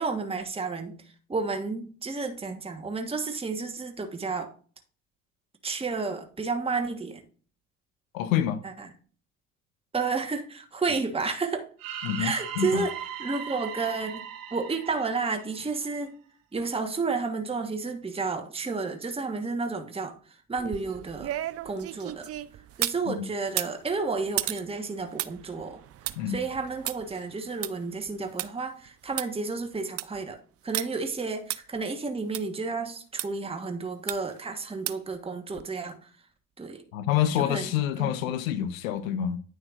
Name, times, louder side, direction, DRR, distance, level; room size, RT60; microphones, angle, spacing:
voice 1, 0.0-4.5 5.6-7.2 8.6-8.9 9.9-11.7 12.2-12.9 13.2-14.2 14.5-16.1 16.5-21.3 21.6-22.3 22.8-25.8 26.3-30.4 30.6-36.1 36.6-36.8 37.4-37.7 38.0-38.1, right 4 dB, 15° right, 1.2 m, -31 dB
voice 2, 8.1-8.6 12.0-12.8 23.1-23.3 26.2-26.4 36.9-39.4, left 10 dB, 80° left, 0.7 m, -27 dB
sound 1, 11.8-15.9, right 9 dB, 60° right, 2.2 m, -38 dB
sound 2, 20.6-23.0 23.5-28.5 28.9-29.0 29.2-29.3 29.7-30.2 30.7-30.9 31.5-31.6 32.3-32.4 33.2-33.3 34.1-34.4 34.9-35.1 35.6-35.7, right 13 dB, 35° right, 0.5 m, -34 dB
9.5 x 6.3 x 2.5 m
hypercardioid pair, 60°, 40 cm